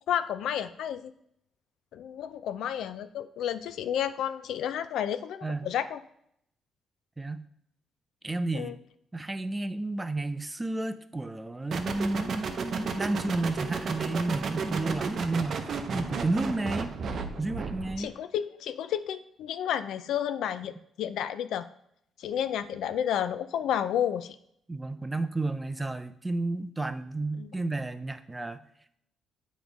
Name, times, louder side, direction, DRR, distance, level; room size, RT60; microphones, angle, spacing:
voice 1, 0.1-1.1 1.9-6.0 8.5-8.8 18.0-21.6 22.2-24.4 27.4-27.5, left 9 dB, 80° left, 12 dB, 0.4 m, -31 dB
voice 2, 7.2-7.5 8.2-8.7 9.1-16.9 17.4-18.1 24.7-28.6, right 2 dB, 15° right, 12 dB, 0.5 m, -32 dB
sound 1, 11.7-18.0, right 5 dB, 55° right, 0.7 m, -33 dB
8.0 x 3.1 x 5.2 m, 0.73 s
cardioid pair, 90°, 0 cm